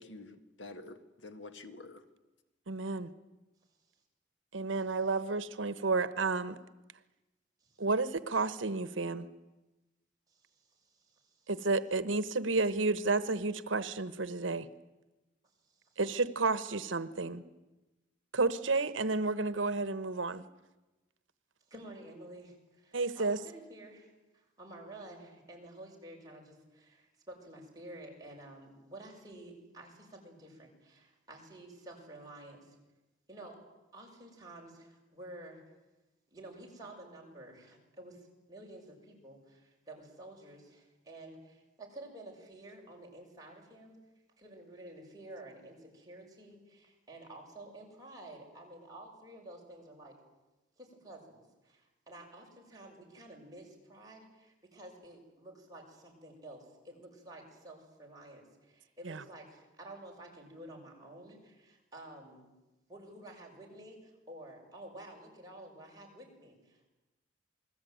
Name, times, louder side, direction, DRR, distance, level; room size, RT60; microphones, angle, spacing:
voice 1, 0.0-2.0, left 2 dB, 75° left, 1.9 m, -48 dB
voice 2, 2.7-3.1 4.5-6.6 7.8-9.3 11.5-14.7 16.0-17.4 18.3-20.4 22.9-23.4 59.0-59.2, right 3 dB, 85° right, 1.1 m, -31 dB
voice 3, 10.3-11.5 15.6-16.0 21.7-32.8 33.3-33.6 33.9-35.6 36.3-44.0 44.4-50.1 50.8-62.4 62.9-66.9, right 1 dB, 20° right, 6.8 m, -51 dB
28.0 x 20.5 x 9.3 m
head